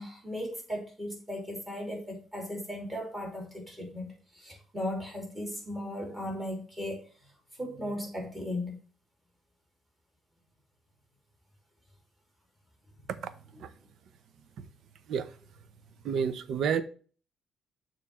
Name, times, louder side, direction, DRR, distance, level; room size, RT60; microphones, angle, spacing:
voice 1, 0.0-7.1 7.6-8.8, left 1 dB, 15° right, 2.9 m, -37 dB
voice 2, 16.0-16.8, right 7 dB, 65° right, 0.6 m, -29 dB
6.8 x 3.1 x 5.9 m
cardioid pair, 130°, 0 cm